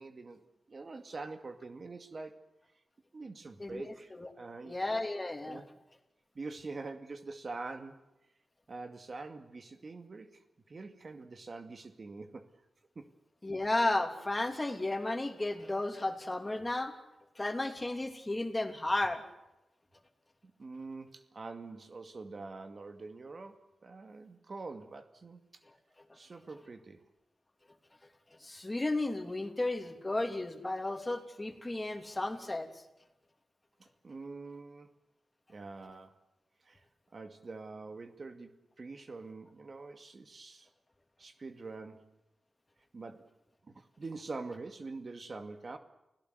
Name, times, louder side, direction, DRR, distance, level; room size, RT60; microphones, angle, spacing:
voice 1, 0.0-2.4 3.1-4.8 5.4-5.7 6.3-8.0 8.7-12.4 13.0-13.1 20.4-25.4 26.1-27.0 34.0-35.0 35.5-36.2 36.7-36.8 37.1-40.7 41.2-42.1 42.9-43.3 43.7-45.8, right 3 dB, 50° right, 7 dB, 2.3 m, -45 dB
voice 2, 3.6-4.3 4.6-5.6 13.4-16.9 17.4-19.2 28.4-32.7, left 2 dB, 25° left, 6 dB, 3.1 m, -33 dB
30.0 x 17.0 x 8.1 m, 0.95 s
cardioid pair, 55°, 0 cm